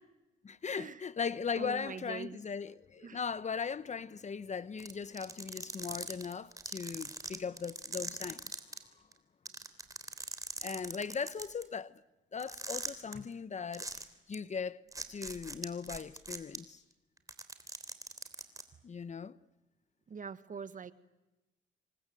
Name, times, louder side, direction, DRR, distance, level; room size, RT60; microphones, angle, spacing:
voice 1, 0.4-8.5 10.6-12.0 12.3-13.9 14.3-14.8 15.1-16.8 18.8-19.3, left 6 dB, 35° left, 1.0 m, -38 dB
voice 2, 1.6-2.4 3.0-3.2 20.1-20.9, right 6 dB, 40° right, 1.6 m, -43 dB
sound 1, 4.8-8.8 9.1-9.2 9.4-11.6 12.4-13.1 13.7-14.0 14.3-14.4 14.9-16.6 17.2-18.6, right 2 dB, 15° right, 3.4 m, -40 dB
28.0 x 24.0 x 7.9 m
cardioid pair, 90°, 20 cm